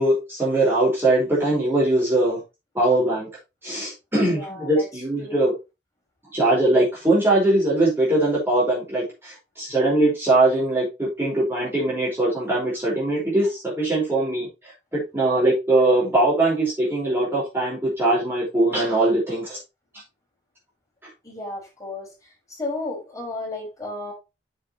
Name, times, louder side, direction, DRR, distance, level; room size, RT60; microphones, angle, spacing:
voice 1, 0.0-2.4 2.7-3.3 3.6-5.5 6.3-14.5 14.9-19.6, right 2 dB, 15° right, 4.8 m, -21 dB
voice 2, 4.3-4.9 5.2-5.5 21.2-24.1, left 2 dB, 20° left, 5.6 m, -33 dB
8.0 x 7.7 x 3.1 m
head